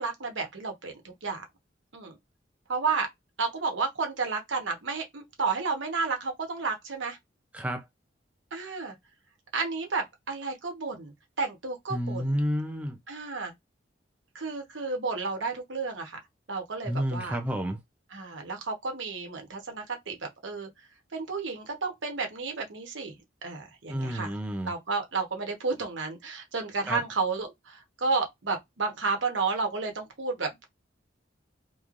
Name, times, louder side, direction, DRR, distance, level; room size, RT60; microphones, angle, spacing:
voice 1, 0.0-1.4 1.9-2.2 2.7-3.1 3.4-7.2 8.5-9.0 9.5-12.3 13.1-13.5 14.3-16.2 16.5-17.4 18.1-20.7 21.1-23.1 23.4-24.4 24.6-30.6, right 4 dB, 85° right, 1.0 m, -32 dB
voice 2, 7.5-7.9 11.9-13.0 16.8-17.8 23.9-24.7 26.9-27.0, equal, 10° right, 0.5 m, -30 dB
3.1 x 2.2 x 2.5 m
head